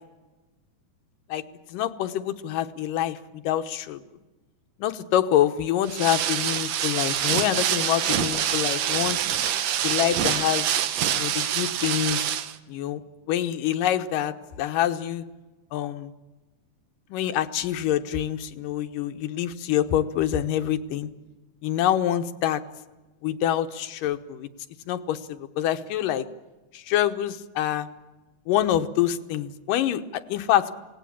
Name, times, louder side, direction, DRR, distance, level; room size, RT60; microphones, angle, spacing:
voice 1, 1.7-4.0 4.8-9.2 9.8-10.7 11.2-12.2 12.7-13.0 13.3-15.2 15.7-16.1 17.1-21.1 21.6-22.6 23.2-24.5 24.9-26.3 26.7-27.9 28.5-30.7, left 11 dB, 85° left, 9 dB, 2.7 m, -26 dB
sound 1, 5.9-12.6, right 10 dB, 65° right, 1.9 m, -26 dB
26.5 x 19.0 x 8.7 m, 1.2 s
omnidirectional pair, 3.7 m